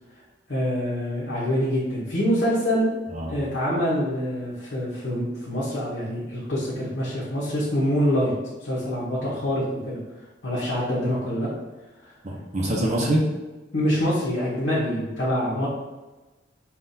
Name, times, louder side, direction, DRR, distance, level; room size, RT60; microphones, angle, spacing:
voice 1, 0.5-2.9 3.3-8.3 8.6-10.0 10.4-11.5 12.0-12.1 13.7-15.7, equal, 70° left, -8 dB, 1.0 m, -25 dB
voice 2, 3.1-3.4 12.2-13.4, right 1 dB, 40° right, -2 dB, 0.7 m, -25 dB
5.6 x 2.4 x 2.7 m, 1.2 s
head